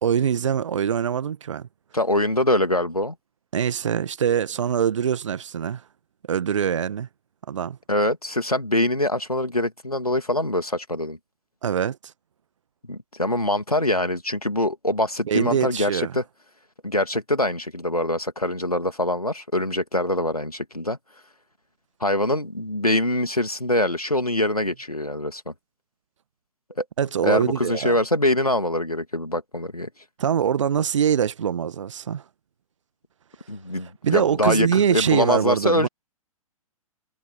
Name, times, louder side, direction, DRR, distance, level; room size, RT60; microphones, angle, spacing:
voice 1, 0.0-1.7 3.5-5.8 6.3-7.1 7.5-7.8 11.6-12.0 15.3-16.1 27.0-27.9 30.2-32.2 34.0-35.9, right 8 dB, 55° right, 1.4 m, -23 dB
voice 2, 1.9-3.1 7.9-11.2 12.9-16.2 16.8-21.0 22.0-25.5 26.8-26.9 27.2-29.9 33.5-35.9, left 1 dB, 90° left, 2.5 m, -24 dB
figure-of-eight pair, 120°, 18 cm